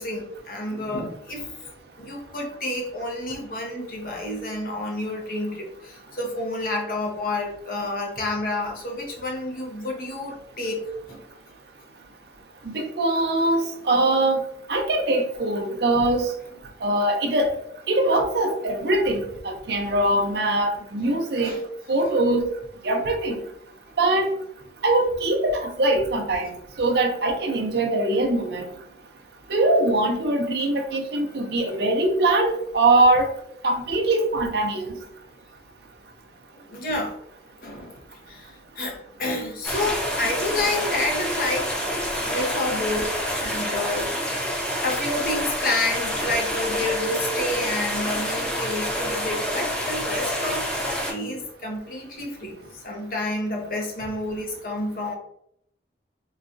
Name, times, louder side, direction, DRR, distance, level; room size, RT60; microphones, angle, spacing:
voice 1, 0.0-1.7 2.0-11.2 21.0-21.6 31.4-31.6 36.5-37.2 37.6-37.9 38.3-41.7 42.3-44.3 44.8-55.2, left 2 dB, 50° left, 0 dB, 0.8 m, -29 dB
voice 2, 12.6-14.4 14.7-16.3 16.8-17.5 17.9-21.5 21.9-22.4 22.8-23.4 24.0-24.3 24.8-28.7 29.5-33.3 33.6-35.0, right 2 dB, 65° right, 3 dB, 0.6 m, -22 dB
sound 1, 39.6-51.1, equal, 5° left, 0.5 m, -28 dB
3.9 x 2.3 x 2.5 m, 0.73 s
head